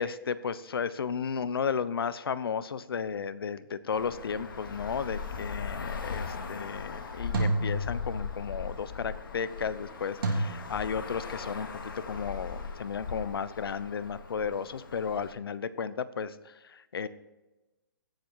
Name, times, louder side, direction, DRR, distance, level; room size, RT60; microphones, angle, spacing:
voice 1, 0.0-17.1, left 6 dB, 80° left, 15 dB, 0.8 m, -34 dB
Traffic noise roadway noise, 3.9-15.3, left 5 dB, 65° left, 2.1 m, -39 dB
sound 1, 5.3-5.7 7.3-8.6 10.2-10.3, right 2 dB, 75° right, 3.3 m, -31 dB
16.5 x 7.6 x 4.7 m, 1.1 s
hypercardioid pair, 165°, 12 cm